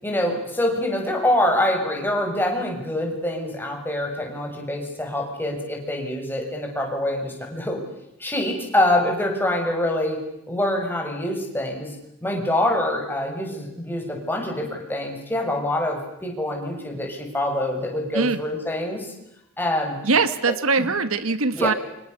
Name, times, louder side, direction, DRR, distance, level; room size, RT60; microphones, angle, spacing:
voice 1, 0.0-7.8 8.2-10.2 10.5-11.9 12.2-19.1 19.6-20.0 20.8-20.9 21.5-21.7, left 1 dB, 10° left, 1 dB, 6.8 m, -25 dB
voice 2, 20.0-21.7, right 4 dB, 70° right, 13 dB, 1.4 m, -21 dB
29.0 x 26.5 x 6.8 m, 0.82 s
head